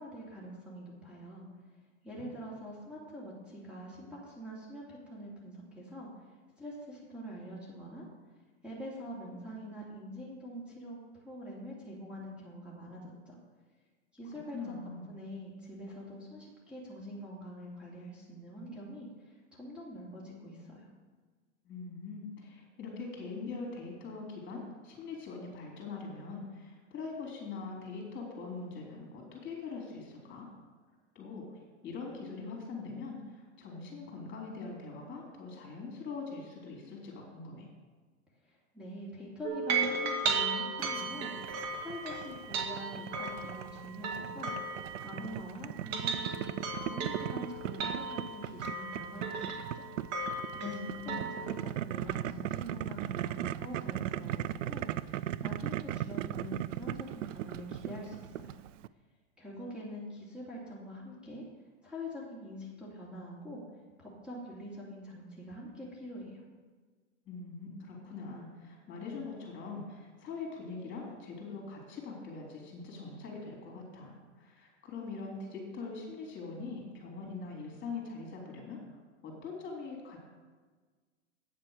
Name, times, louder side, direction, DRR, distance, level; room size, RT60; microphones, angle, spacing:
voice 1, 0.0-1.5 2.0-8.0 8.6-13.4 14.1-14.8 15.1-20.9 38.4-44.6 45.0-46.4 46.8-49.9 50.2-50.8 51.0-58.5 59.4-61.4 61.8-63.6 64.0-66.4, equal, 5° right, -6 dB, 2.7 m, -45 dB
voice 2, 14.5-15.1 21.6-30.5 31.1-37.7 50.6-51.4 67.3-78.8 79.2-80.2, left 4 dB, 30° left, 0 dB, 3.8 m, -42 dB
sound 1, 39.4-45.4 45.8-51.5, right 4 dB, 40° right, 2.0 m, -36 dB
Boiling, 40.8-58.9, right 12 dB, 80° right, 0.5 m, -38 dB
8.9 x 7.4 x 6.6 m, 1.4 s
hypercardioid pair, 110°, 37 cm